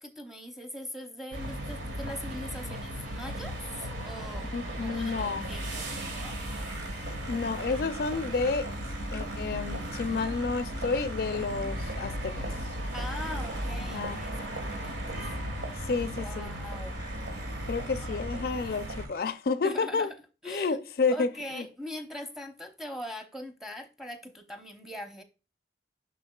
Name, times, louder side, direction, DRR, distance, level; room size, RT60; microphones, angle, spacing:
voice 1, 0.0-6.4 12.9-15.0 15.6-15.7 16.2-17.0 18.0-18.3 19.6-20.1 20.4-20.8 21.1-25.2, left 1 dB, ahead, 0.8 m, -42 dB
sound 1, 1.3-19.1, right 1 dB, 90° right, 1.6 m, -36 dB
sound 2, 2.6-19.3, right 2 dB, 20° right, 1.1 m, -52 dB
voice 2, 4.5-5.5 7.3-8.7 9.1-12.7 13.8-14.3 15.7-16.6 17.7-20.1 20.5-21.7, left 4 dB, 55° left, 0.4 m, -30 dB
7.1 x 5.9 x 2.3 m
head